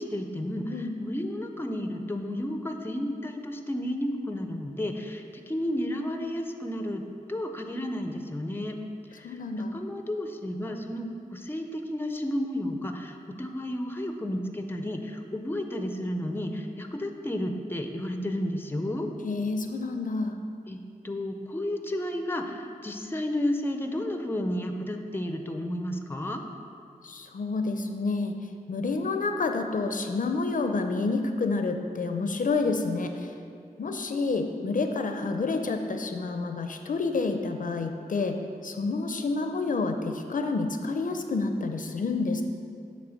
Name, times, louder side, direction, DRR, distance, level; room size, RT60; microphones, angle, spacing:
voice 1, 0.0-7.0 7.3-8.8 9.1-19.1 20.7-20.8 21.0-26.4, left 1 dB, 15° left, 5 dB, 0.5 m, -32 dB
voice 2, 9.2-9.7 19.2-20.4 27.0-28.4 28.7-33.3 33.8-42.4, left 3 dB, 65° left, 6 dB, 0.5 m, -29 dB
7.7 x 3.3 x 6.3 m, 2.4 s
wide cardioid pair, 85°, 15 cm